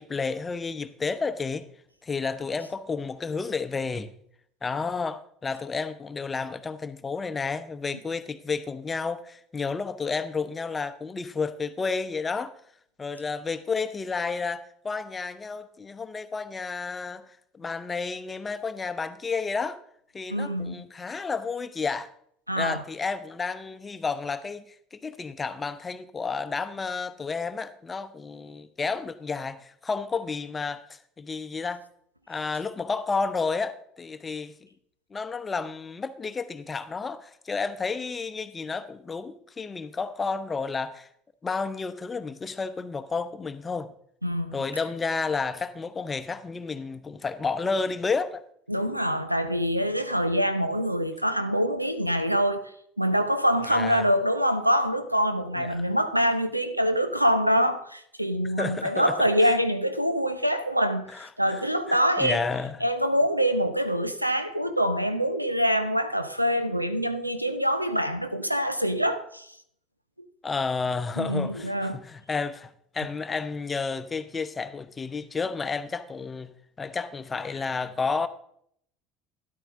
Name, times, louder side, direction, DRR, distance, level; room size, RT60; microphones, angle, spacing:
voice 1, 0.0-1.7 2.0-4.1 4.6-12.5 13.0-17.2 17.5-19.8 20.1-22.1 22.6-31.8 32.3-34.5 35.1-41.1 41.4-43.9 44.5-48.4 53.7-54.1 55.5-55.8 58.6-59.5 61.1-61.6 61.9-62.8 70.4-76.5 76.8-78.3, left 4 dB, 20° left, 0.8 m, -31 dB
voice 2, 20.3-20.8 22.5-22.8 44.2-44.6 48.7-52.7 53.0-62.4 62.8-69.5 71.2-72.0, equal, 90° right, 0.6 m, -25 dB
12.5 x 11.0 x 3.7 m
figure-of-eight pair, 65°, 0 cm